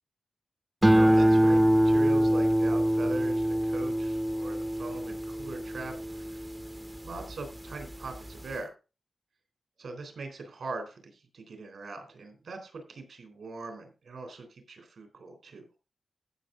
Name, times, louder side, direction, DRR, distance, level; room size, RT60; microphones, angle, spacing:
sound 1, 0.8-7.3 7.8-8.3, equal, 10° right, 0.6 m, -24 dB
voice 1, 0.9-6.4 7.0-8.7 9.8-15.7, right 3 dB, 75° right, 5 dB, 3.6 m, -41 dB
15.0 x 6.2 x 3.8 m, 0.31 s
wide cardioid pair, 175°, 0 cm